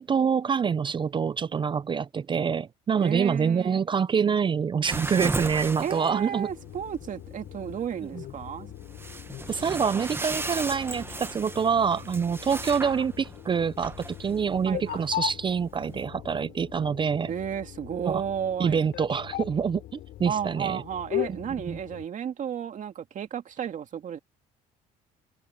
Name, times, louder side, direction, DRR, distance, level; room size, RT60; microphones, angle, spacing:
voice 1, 0.0-6.5 8.0-8.2 9.5-17.3 18.0-18.2 18.6-20.8 21.7-21.8, right 6 dB, 30° right, 0.4 m, -26 dB
voice 2, 3.0-3.8 5.8-8.7 14.7-15.1 17.3-18.8 20.2-24.2, right 8 dB, 50° right, 2.4 m, -33 dB
sound 1, 4.8-16.0, right 2 dB, 15° right, 1.2 m, -37 dB
sound 2, 6.5-22.0, left 13 dB, 75° left, 4.1 m, -39 dB
cardioid pair, 110°, 17 cm